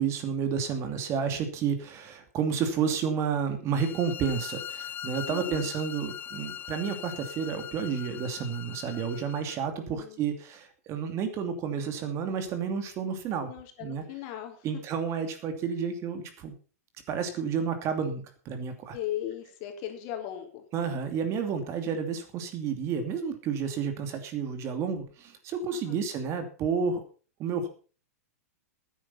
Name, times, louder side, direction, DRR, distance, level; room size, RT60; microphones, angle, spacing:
voice 1, 0.0-13.5 13.8-14.0 14.6-16.5 17.1-18.9 20.7-27.0 27.4-27.7, right 6 dB, 35° right, 7 dB, 2.7 m, -31 dB
sound 1, 3.7-9.6, left 9 dB, 20° left, 0.6 m, -41 dB
voice 2, 5.2-5.7 9.9-10.2 13.5-14.8 18.9-20.6 25.7-26.0, left 11 dB, 45° left, 5 dB, 3.2 m, -38 dB
12.5 x 10.0 x 5.7 m, 0.38 s
hypercardioid pair, 125°, 8 cm